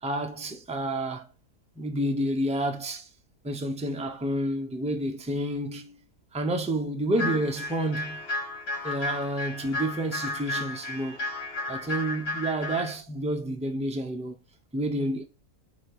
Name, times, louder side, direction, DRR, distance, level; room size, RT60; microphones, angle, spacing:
voice 1, 0.0-1.3 1.8-3.1 3.4-6.0 6.3-8.2 8.8-11.2 11.7-14.4 14.7-15.2, right 1 dB, 10° right, 0.4 m, -29 dB
sound 1, 7.1-13.0, left 2 dB, 45° left, 1.5 m, -33 dB
7.7 x 2.9 x 4.8 m
omnidirectional pair, 1.6 m